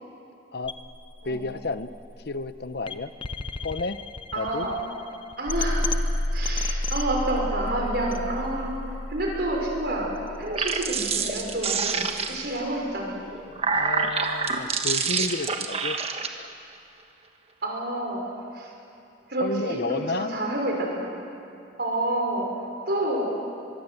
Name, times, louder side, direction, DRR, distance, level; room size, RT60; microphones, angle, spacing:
sound 1, 0.6-12.7, left 1 dB, 30° left, 0.8 m, -32 dB
voice 1, 1.2-1.9 2.2-3.1 3.6-4.0 4.3-4.7 13.7-16.0 16.3-16.5 19.4-20.3, left 3 dB, 60° left, 12 dB, 0.8 m, -31 dB
voice 2, 4.3-4.8 5.4-5.8 6.3-8.8 9.1-13.4 17.6-18.2 18.5-18.7 19.3-21.2 21.8-22.5 22.9-23.2, right 1 dB, 60° right, 0 dB, 5.7 m, -29 dB
sound 2, 10.4-12.6 13.3-16.3, right 5 dB, 35° right, 1.3 m, -27 dB
23.5 x 23.0 x 7.8 m, 2.6 s
head